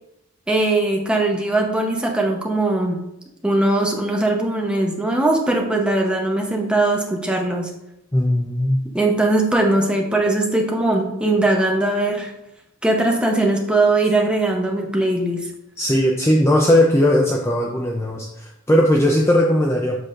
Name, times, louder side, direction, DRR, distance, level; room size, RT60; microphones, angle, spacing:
voice 1, 0.5-3.0 3.4-7.7 8.9-12.3 12.8-15.5, right 2 dB, 5° right, 0 dB, 0.8 m, -20 dB
voice 2, 8.1-8.8 15.8-20.0, left 1 dB, 10° left, 0 dB, 0.5 m, -18 dB
7.6 x 6.1 x 2.5 m, 0.85 s
head